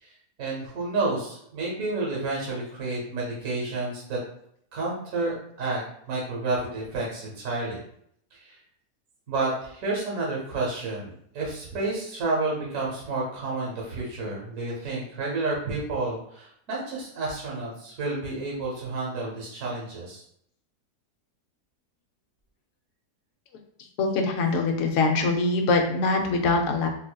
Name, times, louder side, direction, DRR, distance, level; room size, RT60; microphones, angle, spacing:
voice 1, 0.4-4.2 4.7-5.8 6.1-7.8 8.3-8.6 9.3-20.2, right 3 dB, 60° right, -4 dB, 1.2 m, -30 dB
voice 2, 24.0-26.9, left 3 dB, 65° left, 2 dB, 0.8 m, -23 dB
3.8 x 2.5 x 2.2 m, 0.69 s
omnidirectional pair, 1.7 m